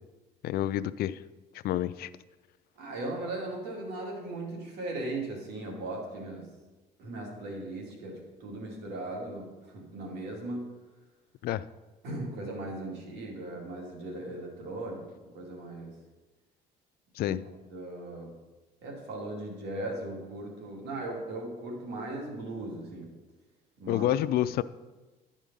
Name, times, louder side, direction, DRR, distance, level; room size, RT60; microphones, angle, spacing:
voice 1, 0.4-1.2 1.6-2.1 11.4-11.7 17.2-17.4 23.9-24.6, left 12 dB, 65° left, 16 dB, 0.4 m, -28 dB
voice 2, 2.8-6.5 7.0-10.8 12.0-15.1 15.3-15.9 17.2-17.4 17.7-18.3 18.8-23.1 23.8-24.0, right 2 dB, 80° right, 0 dB, 2.5 m, -38 dB
11.5 x 5.0 x 5.4 m, 1.2 s
cardioid pair, 110°, 17 cm